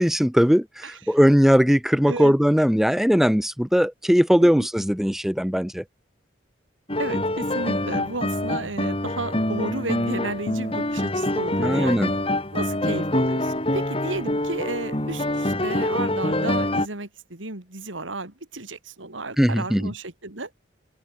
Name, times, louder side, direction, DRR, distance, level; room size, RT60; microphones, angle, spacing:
voice 1, 0.0-5.8 11.6-12.1 19.4-19.8, equal, ahead, 0.5 m, -19 dB
voice 2, 0.8-1.2 2.1-2.4 4.4-4.7 7.0-12.1 12.5-20.5, right 2 dB, 90° right, 3.7 m, -33 dB
sound 1, 6.9-16.9, left 1 dB, 30° left, 3.8 m, -25 dB
open air
head